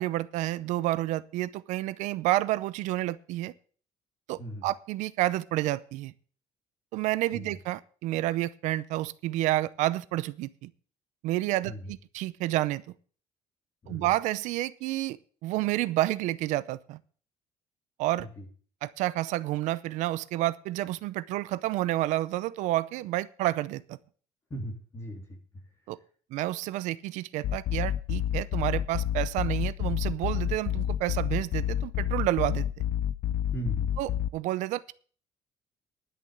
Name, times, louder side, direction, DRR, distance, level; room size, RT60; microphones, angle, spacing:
voice 1, 0.0-3.5 4.3-6.1 6.9-10.7 11.2-12.8 13.9-17.0 18.0-18.3 18.8-24.0 25.9-26.0 26.3-32.8 34.0-34.9, right 16 dB, 85° right, 17 dB, 0.6 m, -30 dB
voice 2, 24.5-25.4 33.5-33.9, right 1 dB, 20° left, 1 dB, 3.2 m, -37 dB
sound 1, 27.4-34.3, left 11 dB, 60° left, 0.6 m, -29 dB
11.0 x 6.6 x 8.0 m, 0.43 s
cardioid pair, 155°, 12 cm